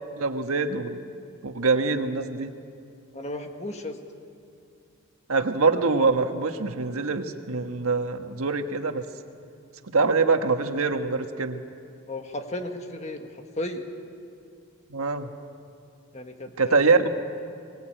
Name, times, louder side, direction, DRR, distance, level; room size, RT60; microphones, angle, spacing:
voice 1, 0.2-1.0 1.4-2.5 5.3-9.0 9.9-11.6 14.9-15.3 16.6-17.1, right 4 dB, 85° right, 7 dB, 1.4 m, -24 dB
voice 2, 3.1-4.0 12.1-13.2 13.6-13.9 16.1-17.0, left 1 dB, 30° left, 5 dB, 1.7 m, -34 dB
23.0 x 19.5 x 9.0 m, 2.5 s
head